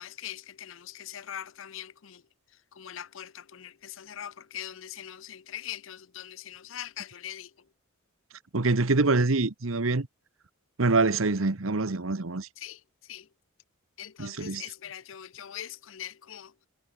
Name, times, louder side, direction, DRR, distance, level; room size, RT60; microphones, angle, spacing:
voice 1, 0.0-2.2 2.8-3.7 4.0-7.5 12.6-12.8 13.1-13.2 14.0-16.5, left 10 dB, 70° left, 0.6 m, -41 dB
voice 2, 8.5-10.1 10.8-12.5 14.2-14.6, right 3 dB, 80° right, 1.2 m, -25 dB
head